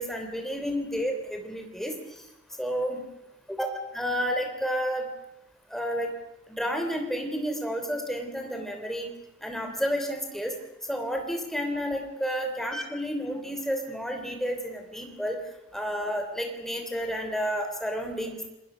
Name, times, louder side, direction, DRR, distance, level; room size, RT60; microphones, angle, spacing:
voice 1, 0.0-2.2 2.6-3.0 3.5-3.7 3.9-5.1 5.7-6.1 6.6-9.1 9.4-10.5 10.9-15.4 15.7-18.4, equal, ahead, 4 dB, 3.1 m, -31 dB
29.0 x 20.5 x 6.2 m, 0.94 s
head